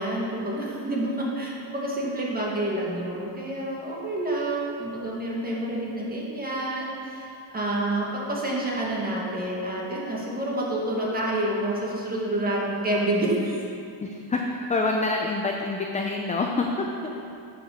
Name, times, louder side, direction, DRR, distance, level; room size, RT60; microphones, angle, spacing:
voice 1, 0.0-13.6, right 1 dB, 20° right, -4 dB, 1.9 m, -28 dB
voice 2, 14.0-16.9, left 3 dB, 15° left, 1 dB, 0.5 m, -26 dB
8.9 x 5.2 x 6.4 m, 2.6 s
cardioid pair, 120°, 49 cm